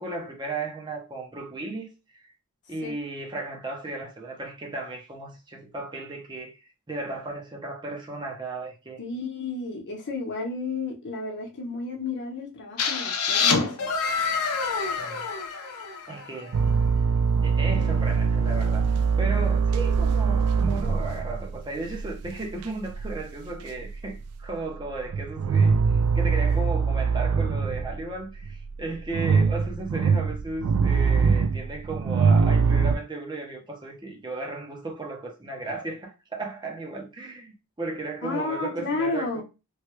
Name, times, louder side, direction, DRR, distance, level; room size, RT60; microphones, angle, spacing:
voice 1, 0.0-2.3 2.7-6.6 6.9-9.0 14.8-15.2 16.1-16.6 17.4-18.9 19.2-39.4, right 2 dB, 20° right, 0.7 m, -35 dB
voice 2, 9.0-13.9 38.2-39.4, left 3 dB, 55° left, 0.9 m, -32 dB
sound 1, 12.8-16.5, left 5 dB, 80° left, 0.6 m, -27 dB
sound 2, 16.5-23.2 23.5-24.5 24.8-28.0 28.4-33.0, right 5 dB, 85° right, 0.3 m, -23 dB
3.1 x 2.3 x 3.0 m
head